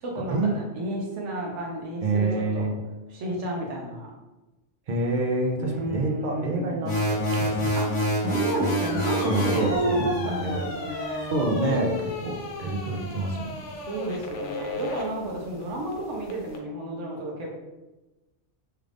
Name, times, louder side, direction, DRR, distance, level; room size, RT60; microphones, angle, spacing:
voice 1, 0.0-2.8 3.1-4.1 5.6-6.8 7.8-11.4 13.9-17.5, right 1 dB, 90° right, -1 dB, 1.1 m, -31 dB
voice 2, 2.0-2.8 4.9-7.8 9.2-10.6 11.3-13.5, right 2 dB, 55° right, 0 dB, 0.6 m, -27 dB
sound 1, 6.8-9.7, right 1 dB, 45° left, 1.2 m, -26 dB
sound 2, 8.8-16.6, left 3 dB, 90° left, 0.9 m, -36 dB
3.3 x 2.5 x 3.3 m, 1.1 s
omnidirectional pair, 1.2 m